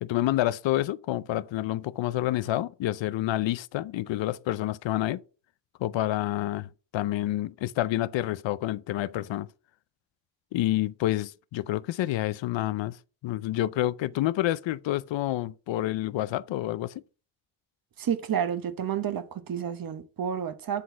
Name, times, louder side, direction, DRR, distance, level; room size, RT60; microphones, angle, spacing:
voice 1, 0.0-5.2 5.8-9.5 10.5-13.0 13.2-17.0, left 14 dB, 90° left, 0.6 m, -28 dB
voice 2, 18.0-20.8, right 8 dB, 50° right, 1.0 m, -30 dB
9.8 x 4.1 x 4.5 m
wide cardioid pair, 160°, 43 cm